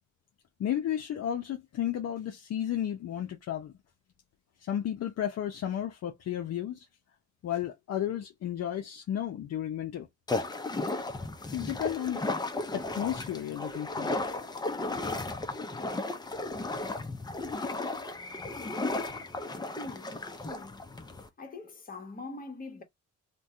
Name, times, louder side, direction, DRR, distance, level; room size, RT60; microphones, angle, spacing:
voice 1, 0.6-3.7 4.6-6.8 7.4-10.1 11.5-12.2 12.7-14.2, left 10 dB, 55° left, 0.6 m, -33 dB
sound 1, 10.3-21.3, left 2 dB, 15° left, 0.5 m, -34 dB
voice 2, 19.7-20.9 21.4-22.8, left 3 dB, 30° left, 1.2 m, -43 dB
2.6 x 2.2 x 3.5 m
cardioid pair, 90°, 30 cm